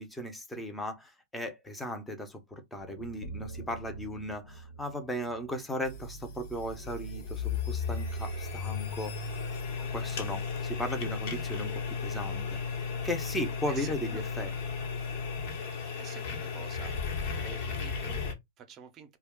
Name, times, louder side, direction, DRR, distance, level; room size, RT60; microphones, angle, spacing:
voice 1, 0.0-9.1 9.8-12.6 13.0-14.5, equal, 5° left, 0.7 m, -36 dB
sound 1, 2.8-6.9, right 3 dB, 85° left, 0.6 m, -46 dB
sound 2, 5.8-18.3, left 5 dB, 55° left, 1.1 m, -35 dB
voice 2, 13.7-14.2 16.0-16.9 17.4-19.2, right 7 dB, 30° right, 0.7 m, -48 dB
2.3 x 2.2 x 3.6 m
hypercardioid pair, 125°, 0 cm